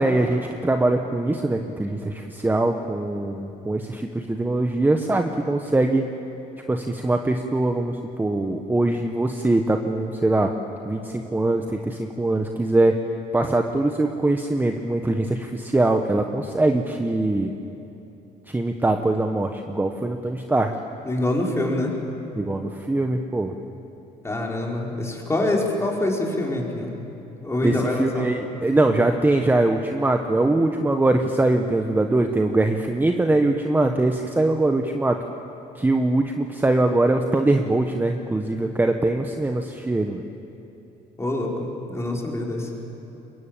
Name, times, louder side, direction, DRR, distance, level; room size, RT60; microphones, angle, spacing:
voice 1, 0.0-6.1 6.7-10.5 10.8-12.9 13.3-17.5 18.5-20.7 22.3-23.5 27.6-35.2 35.7-40.2, right 2 dB, 10° right, 5 dB, 1.1 m, -22 dB
voice 2, 21.0-21.9 24.2-26.9 27.4-28.3 41.2-42.7, left 1 dB, 15° left, -1 dB, 4.7 m, -25 dB
23.0 x 22.0 x 9.0 m, 3.0 s
cardioid pair, 110°, 17 cm